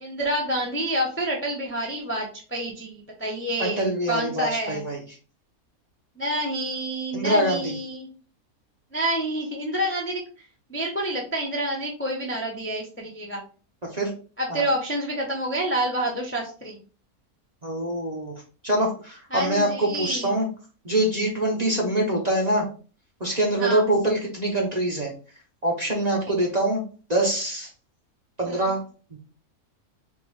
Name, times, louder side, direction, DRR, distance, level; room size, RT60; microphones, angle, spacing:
voice 1, 0.0-4.8 6.2-8.1 8.9-10.2 10.7-13.4 14.4-16.8 19.3-20.3 23.6-23.8 28.5-28.6, right 1 dB, 15° left, -1 dB, 0.5 m, -28 dB
voice 2, 3.6-5.0 7.1-7.8 13.9-14.1 14.5-14.6 17.6-20.5 20.8-22.7 23.2-25.1 25.6-26.8 27.1-27.7 28.4-28.8 29.1-29.2, right 1 dB, 35° right, -1 dB, 0.8 m, -24 dB
3.6 x 2.4 x 4.6 m, 0.38 s
omnidirectional pair, 1.6 m